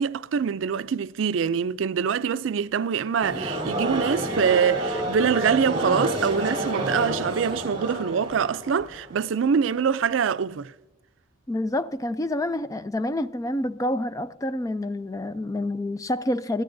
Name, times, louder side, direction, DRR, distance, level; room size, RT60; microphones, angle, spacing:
voice 1, 0.0-10.7, right 7 dB, 80° right, 0.4 m, -24 dB
sound 1, 3.2-9.6, right 1 dB, 30° right, 3.2 m, -29 dB
voice 2, 11.5-16.6, left 1 dB, 15° left, 0.4 m, -28 dB
22.0 x 14.5 x 2.6 m
head